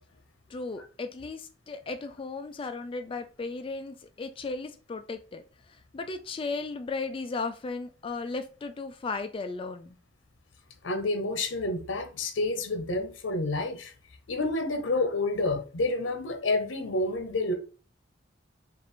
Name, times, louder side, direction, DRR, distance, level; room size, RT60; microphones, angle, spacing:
voice 1, 0.5-5.4 5.9-10.0, left 3 dB, 30° left, 0.3 m, -35 dB
voice 2, 10.8-13.9 14.3-17.5, left 2 dB, 80° left, 0.8 m, -29 dB
5.3 x 2.5 x 2.9 m
head